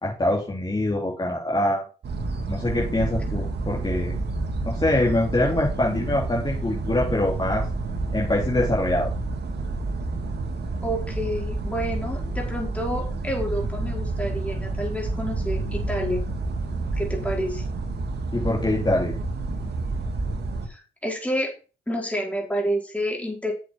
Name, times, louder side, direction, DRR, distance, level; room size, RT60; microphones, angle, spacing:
voice 1, 0.0-1.8 2.5-4.1 4.7-7.6 8.1-9.1 18.3-19.2, left 1 dB, 20° left, -4 dB, 3.6 m, -24 dB
sound 1, 2.0-20.7, right 3 dB, 55° right, 2.5 m, -29 dB
voice 2, 10.8-16.2 16.9-17.6 20.7-21.5 21.9-23.5, equal, 5° left, -1 dB, 4.8 m, -29 dB
7.7 x 7.6 x 5.4 m, 0.35 s
cardioid pair, 90°, 20 cm